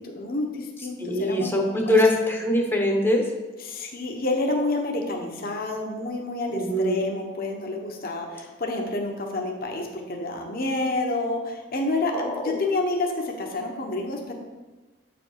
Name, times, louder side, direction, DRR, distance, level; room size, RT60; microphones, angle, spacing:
voice 1, 0.0-1.5 1.8-1.9 3.6-14.3, left 2 dB, 50° left, 1 dB, 1.0 m, -29 dB
voice 2, 1.0-3.2 6.5-7.0 12.1-12.6, left 1 dB, 10° left, 1 dB, 0.8 m, -23 dB
8.2 x 5.2 x 4.7 m, 1.2 s
head